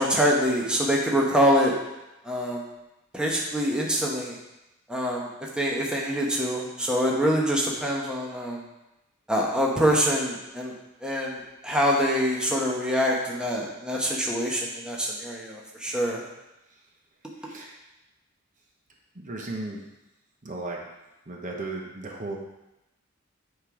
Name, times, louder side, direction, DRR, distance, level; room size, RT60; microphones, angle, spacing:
voice 1, 0.0-1.7 2.2-2.6 3.1-4.4 4.9-8.6 9.3-10.7 11.0-16.2, equal, 5° right, -3 dB, 1.0 m, -25 dB
voice 2, 17.4-17.7 19.1-19.8 20.4-20.8 21.3-22.4, right 2 dB, 40° right, -1 dB, 1.0 m, -35 dB
8.8 x 3.9 x 4.9 m, 0.95 s
head